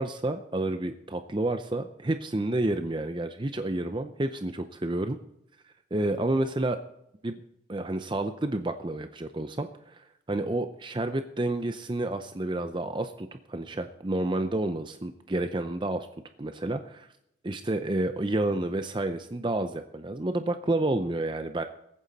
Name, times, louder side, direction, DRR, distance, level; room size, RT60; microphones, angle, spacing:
voice 1, 0.0-5.2 5.9-6.8 7.2-7.4 7.7-16.1 16.4-17.1 17.4-21.6, right 2 dB, 25° right, 8 dB, 0.6 m, -30 dB
22.0 x 9.2 x 4.1 m, 0.81 s
head